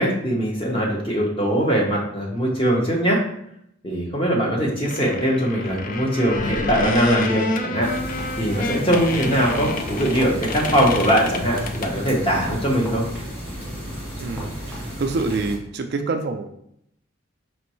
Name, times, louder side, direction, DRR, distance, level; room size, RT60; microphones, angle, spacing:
voice 1, 0.0-3.2 3.8-7.9 8.4-13.0, equal, 25° left, -2 dB, 1.0 m, -21 dB
sound 1, 4.8-12.1 12.4-12.5, left 2 dB, 40° left, 0.4 m, -28 dB
sound 2, 7.8-15.6, equal, 10° left, 1.6 m, -33 dB
voice 2, 14.2-16.5, right 3 dB, 50° right, 6 dB, 0.3 m, -27 dB
5.1 x 3.1 x 3.0 m, 0.74 s
head